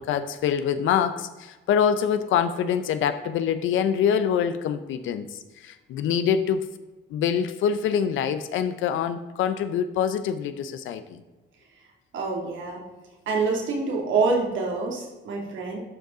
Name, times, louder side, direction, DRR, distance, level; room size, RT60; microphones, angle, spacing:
voice 1, 0.0-6.6 7.1-11.2, left 8 dB, 80° left, 10 dB, 0.6 m, -25 dB
voice 2, 12.1-12.8 13.3-15.8, right 4 dB, 75° right, 0 dB, 2.5 m, -26 dB
12.0 x 5.4 x 3.8 m, 1.2 s
cardioid pair, 90°, 20 cm